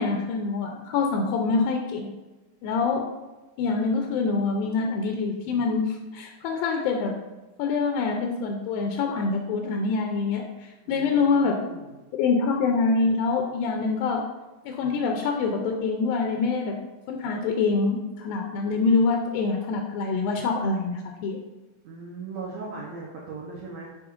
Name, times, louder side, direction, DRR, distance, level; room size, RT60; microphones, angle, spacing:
voice 1, 0.0-2.1 2.6-3.0 3.6-7.1 7.6-11.6 12.1-14.2 14.7-16.8 17.1-21.4, left 4 dB, 85° left, 2 dB, 2.3 m, -25 dB
voice 2, 10.8-12.0 21.8-23.9, right 4 dB, 90° right, -4 dB, 1.5 m, -39 dB
7.7 x 5.5 x 2.4 m, 1.1 s
omnidirectional pair, 4.3 m